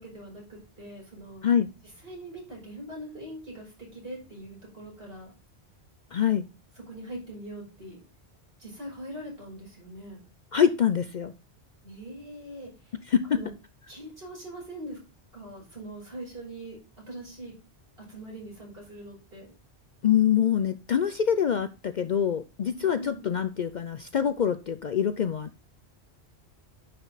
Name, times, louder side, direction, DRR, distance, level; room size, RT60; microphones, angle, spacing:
voice 1, 0.0-1.5 2.0-5.3 6.9-8.0 8.6-10.2 11.8-12.9 13.3-13.5 13.9-15.0 15.3-16.8 17.1-17.5 18.1-19.5 22.8-23.2, right 1 dB, 60° right, -3 dB, 6.0 m, -42 dB
voice 2, 6.1-6.4 10.5-11.3 13.1-13.4 20.0-25.6, left 8 dB, 50° left, 12 dB, 0.6 m, -25 dB
10.0 x 6.1 x 4.0 m, 0.31 s
omnidirectional pair, 1.1 m